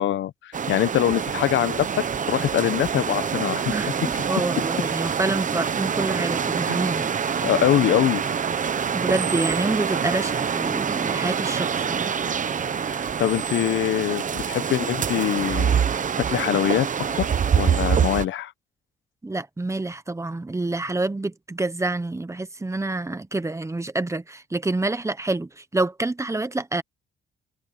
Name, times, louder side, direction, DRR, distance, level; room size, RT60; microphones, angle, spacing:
voice 1, 0.0-3.7 6.7-6.8 7.4-8.2 12.9-15.8 16.3-16.9 17.2-17.3 17.5-18.5, left 12 dB, 70° left, 1.0 m, -23 dB
sound 1, 0.5-18.3, right 7 dB, 40° right, 1.1 m, -25 dB
voice 2, 3.7-7.2 8.9-12.1 19.2-26.8, right 2 dB, 15° right, 1.1 m, -27 dB
cardioid pair, 90°, 20 cm